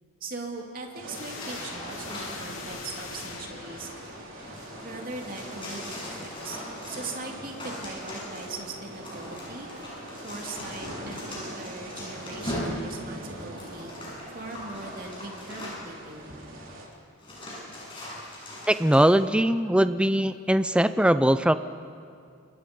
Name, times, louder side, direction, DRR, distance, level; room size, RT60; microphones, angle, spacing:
voice 1, 0.2-3.9 4.8-6.6 6.9-9.7 10.2-13.9 14.3-16.3, right 3 dB, 45° right, 1 dB, 2.8 m, -40 dB
sound 1, 0.9-16.9, right 1 dB, 70° right, 3.7 m, -43 dB
sound 2, 1.1-4.4, left 4 dB, 80° left, 3.0 m, -42 dB
sound 3, 1.1-2.6 3.6-16.0 16.7-16.8 17.2-19.1, left 1 dB, 25° left, 7.9 m, -40 dB
voice 2, 18.7-21.5, right 1 dB, 5° right, 12 dB, 0.5 m, -21 dB
28.5 x 23.0 x 5.4 m, 2.3 s
head